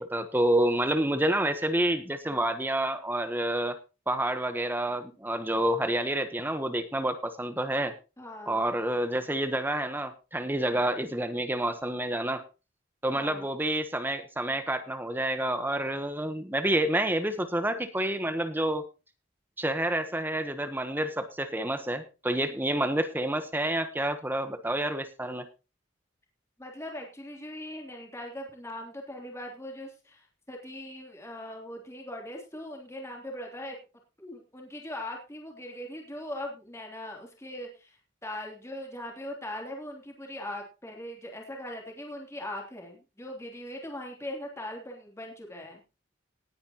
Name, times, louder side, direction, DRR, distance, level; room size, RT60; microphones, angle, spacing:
voice 1, 0.0-3.8 4.1-7.9 8.5-12.4 13.0-18.9 19.6-25.5, right 1 dB, 10° right, 9 dB, 1.1 m, -28 dB
voice 2, 8.2-8.6 10.5-10.8 13.1-13.5 22.5-22.7 26.6-33.8 34.2-45.8, left 1 dB, 15° left, 0 dB, 3.2 m, -40 dB
19.0 x 9.5 x 3.0 m, 0.30 s
head